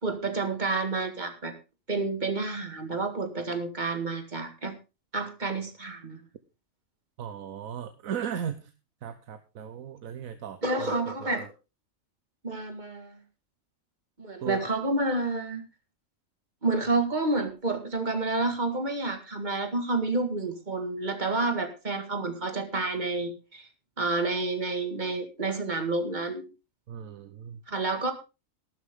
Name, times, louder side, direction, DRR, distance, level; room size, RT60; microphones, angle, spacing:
voice 1, 0.0-1.5 1.9-4.7 5.1-6.2 10.6-11.5 12.4-13.2 14.2-15.6 16.6-23.7 24.0-26.4 27.7-28.1, right 3 dB, 35° right, 7 dB, 2.0 m, -29 dB
voice 2, 7.2-8.7 9.0-10.9 11.4-11.5 14.4-14.6 26.9-27.6, right 8 dB, 80° right, 10 dB, 1.3 m, -37 dB
13.5 x 12.0 x 3.7 m, 0.29 s
omnidirectional pair, 1.4 m